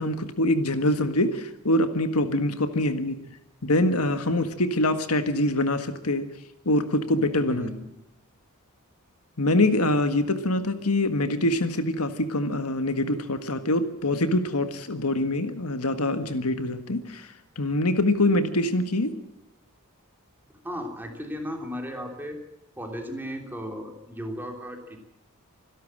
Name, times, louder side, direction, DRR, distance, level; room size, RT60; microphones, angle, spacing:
voice 1, 0.0-3.2 3.6-6.3 6.7-7.7 9.4-17.3 17.6-19.1, left 1 dB, 90° left, 9 dB, 1.7 m, -24 dB
voice 2, 7.5-7.9 20.6-22.4 22.8-25.0, equal, 10° right, 3 dB, 3.1 m, -35 dB
25.5 x 12.0 x 8.8 m, 0.86 s
head